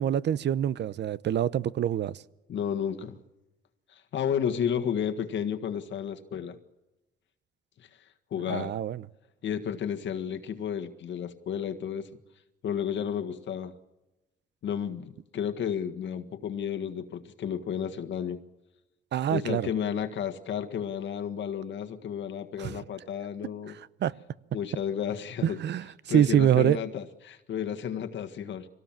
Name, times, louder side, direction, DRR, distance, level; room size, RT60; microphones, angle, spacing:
voice 1, 0.0-2.2 8.5-9.0 19.1-19.7 22.6-22.7 24.0-24.1 25.4-26.8, right 10 dB, 60° right, 0.8 m, -25 dB
voice 2, 2.5-3.2 3.9-6.6 8.3-8.7 9.4-12.1 12.6-13.7 14.6-18.4 19.3-23.7 24.5-25.6 26.1-28.7, left 8 dB, 70° left, 1.7 m, -32 dB
23.5 x 18.0 x 7.4 m
cardioid pair, 90°, 20 cm